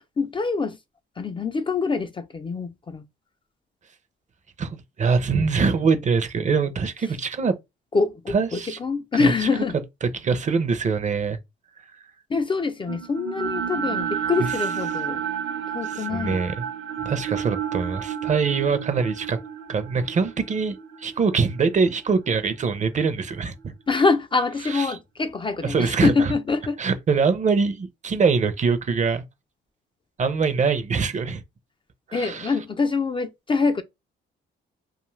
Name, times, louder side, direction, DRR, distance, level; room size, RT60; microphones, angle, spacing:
voice 1, 0.2-0.8 1.2-3.0 7.9-9.7 12.3-15.2 15.7-16.4 23.9-26.8 32.1-33.8, left 4 dB, 25° left, 0.3 m, -25 dB
voice 2, 4.6-7.6 8.3-8.8 9.1-9.3 10.0-11.4 14.4-14.6 15.8-16.6 17.0-19.4 19.7-23.7 24.6-25.0 25.6-26.3 26.8-29.2 30.2-31.4 32.1-32.5, right 5 dB, 40° right, 0.6 m, -23 dB
sound 1, 12.8-23.0, right 8 dB, 75° right, 0.7 m, -31 dB
2.5 x 2.3 x 3.1 m
cardioid pair, 90°, 20 cm